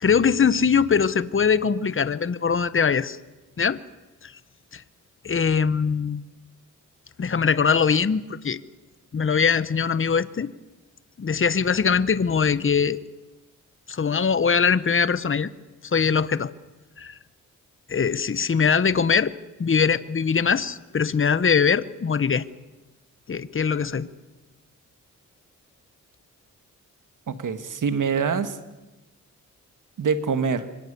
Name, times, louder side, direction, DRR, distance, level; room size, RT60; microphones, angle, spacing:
voice 1, 0.0-3.2 3.6-3.8 4.2-4.3 4.7-4.8 5.2-6.2 7.2-8.6 9.1-10.5 11.2-13.0 13.9-15.5 15.8-16.5 17.0-17.1 17.9-19.3 19.6-22.4 23.3-24.1, left 6 dB, 40° left, 16 dB, 1.1 m, -22 dB
voice 2, 27.3-28.6 30.0-30.7, right 5 dB, 70° right, 10 dB, 1.8 m, -25 dB
26.5 x 24.5 x 6.9 m, 1.1 s
cardioid pair, 70°, 32 cm